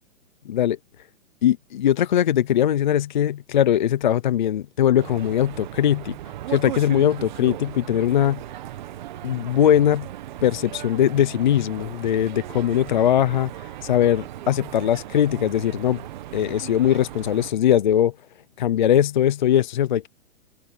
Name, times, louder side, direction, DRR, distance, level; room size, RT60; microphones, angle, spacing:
voice 1, 0.5-0.8 1.4-6.2 6.5-8.4 9.2-10.1 10.4-16.0 16.3-18.1 18.6-20.1, left 10 dB, 35° left, 0.6 m, -20 dB
sound 1, 5.0-17.5, right 13 dB, 35° right, 1.6 m, -37 dB
hypercardioid pair, 170°, 40 cm